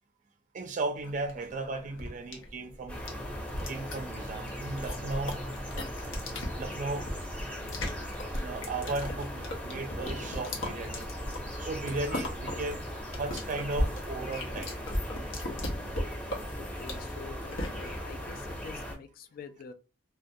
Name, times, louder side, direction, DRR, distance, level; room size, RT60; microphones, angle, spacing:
voice 1, 0.5-3.0 3.7-5.5 6.6-7.1 8.4-11.1 11.6-12.9 13.2-14.8, right 2 dB, 40° right, 0.4 m, -36 dB
sound 1, 1.0-18.0, left 1 dB, 85° left, 0.7 m, -37 dB
sound 2, 2.9-19.0, equal, 5° left, 0.6 m, -39 dB
voice 2, 16.6-19.7, left 5 dB, 50° left, 0.3 m, -47 dB
2.2 x 2.1 x 2.7 m
head